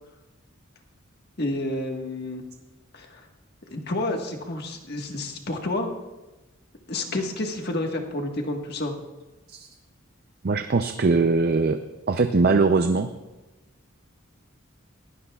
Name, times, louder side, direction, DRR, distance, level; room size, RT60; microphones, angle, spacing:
voice 1, 1.4-2.4 2.9-3.3 3.7-5.9 6.9-8.9, left 2 dB, 50° left, 3 dB, 1.5 m, -29 dB
voice 2, 10.4-11.8 12.1-13.1, right 3 dB, 45° right, 8 dB, 0.5 m, -21 dB
21.0 x 16.0 x 2.4 m, 1.1 s
head